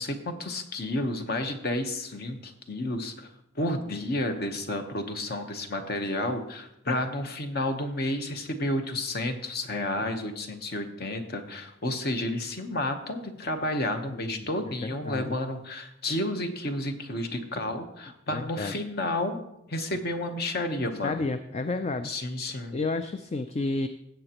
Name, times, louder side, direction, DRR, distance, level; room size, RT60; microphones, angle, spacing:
voice 1, 0.0-3.3 3.5-19.4 19.7-21.2 22.0-22.8, left 1 dB, 50° left, 6 dB, 1.0 m, -31 dB
voice 2, 14.1-14.5 14.8-15.4 18.3-18.8 20.8-22.1 22.7-23.9, left 3 dB, 35° left, 9 dB, 0.4 m, -31 dB
16.0 x 7.7 x 3.0 m, 0.82 s
head